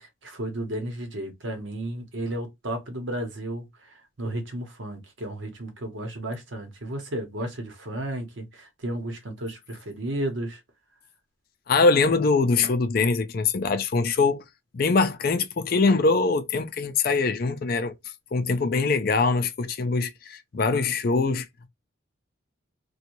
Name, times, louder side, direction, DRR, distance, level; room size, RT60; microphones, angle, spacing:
voice 1, 0.0-10.6, right 1 dB, 65° right, 0.9 m, -33 dB
voice 2, 11.7-14.4 14.7-17.9 18.3-21.5, left 4 dB, 45° left, 0.4 m, -23 dB
2.6 x 2.3 x 2.9 m
head